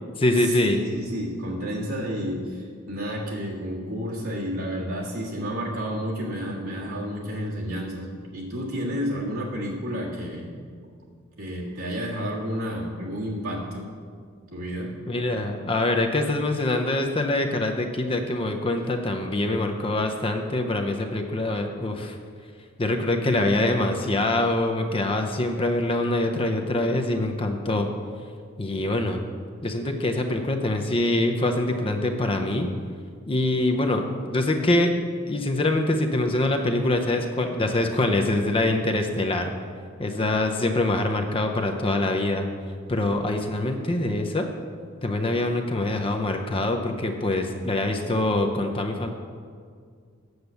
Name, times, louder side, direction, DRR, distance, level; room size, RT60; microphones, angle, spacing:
voice 1, 0.2-0.8 15.1-22.2 22.8-27.9 28.6-29.2 29.6-32.7 33.3-34.9 35.3-39.5 40.0-42.5 42.9-44.5 45.0-49.1, left 2 dB, 25° left, 5 dB, 0.6 m, -24 dB
voice 2, 0.8-8.1 8.3-10.5 11.4-13.8 14.5-14.9, equal, 90° right, -4 dB, 1.8 m, -31 dB
8.0 x 6.6 x 6.9 m, 2.1 s
head